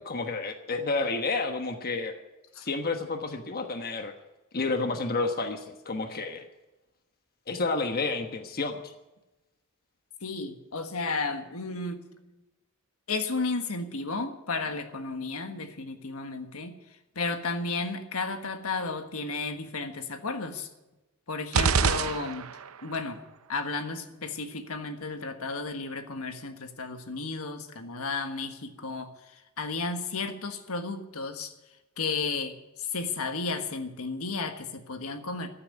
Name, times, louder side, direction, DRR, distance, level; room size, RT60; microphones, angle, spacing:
voice 1, 0.0-2.1 2.6-4.1 4.5-6.5 7.5-8.9, left 3 dB, 45° left, 5 dB, 1.2 m, -30 dB
voice 2, 10.2-12.0 13.1-16.7 17.1-20.7 21.3-22.5 22.8-23.2 23.5-31.5 32.0-35.5, left 3 dB, 75° left, 6 dB, 1.5 m, -33 dB
sound 1, 21.5-22.8, right 5 dB, 70° right, 0.7 m, -26 dB
14.5 x 8.6 x 9.7 m, 1.0 s
head